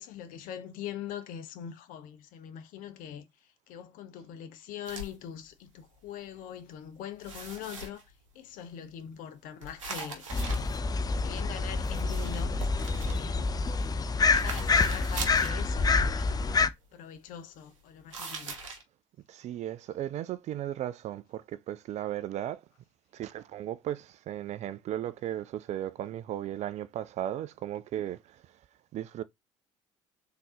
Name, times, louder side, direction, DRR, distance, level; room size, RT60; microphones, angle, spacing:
voice 1, 0.0-3.2 3.7-8.0 8.3-10.2 11.1-13.5 14.2-16.3 16.9-18.6, left 9 dB, 55° left, 0.9 m, -42 dB
sound 1, 4.8-5.1 5.8-6.1 6.4-6.8 7.2-8.3 9.6-11.3 11.8-13.9 14.3-15.6 18.1-18.8, right 3 dB, 80° right, 1.1 m, -41 dB
sound 2, 10.3-16.7, left 4 dB, 25° left, 0.5 m, -27 dB
voice 2, 19.3-22.6 23.1-28.4 28.9-29.2, right 12 dB, 45° right, 0.4 m, -36 dB
3.8 x 3.8 x 2.8 m
figure-of-eight pair, 55°, 16 cm